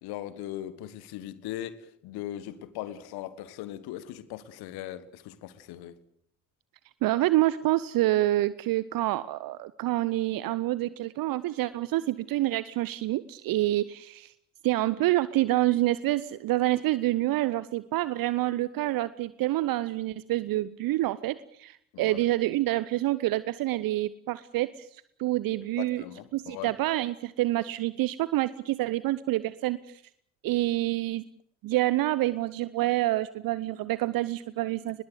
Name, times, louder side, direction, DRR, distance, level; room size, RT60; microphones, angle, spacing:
voice 1, 0.0-1.8 2.0-6.0 21.9-22.2 25.8-26.7, left 13 dB, 60° left, 1.6 m, -39 dB
voice 2, 7.0-14.3 14.6-26.0 26.3-30.0 30.4-31.2 31.6-35.0, right 16 dB, 55° right, 0.9 m, -27 dB
23.0 x 21.0 x 8.0 m
figure-of-eight pair, 45°, 42 cm